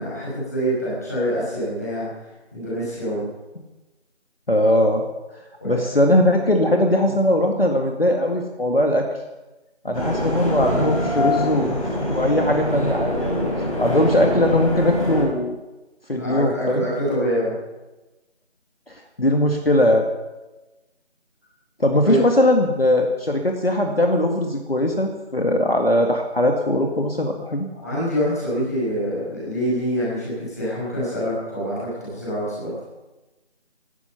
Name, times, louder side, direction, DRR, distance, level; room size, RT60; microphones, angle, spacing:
voice 1, 0.0-2.1 2.5-3.3 5.6-5.9 16.2-17.5 22.0-22.2 27.8-32.7, equal, 15° left, -7 dB, 5.8 m, -25 dB
voice 2, 4.5-5.0 5.6-9.1 9.8-13.4 13.8-15.6 16.1-16.8 18.9-20.1 21.8-27.7, left 1 dB, 60° left, 2 dB, 2.1 m, -20 dB
sound 1, 9.9-15.2, left 1 dB, 30° left, 5.0 m, -24 dB
19.5 x 12.5 x 5.9 m, 1.1 s
figure-of-eight pair, 170°, 34 cm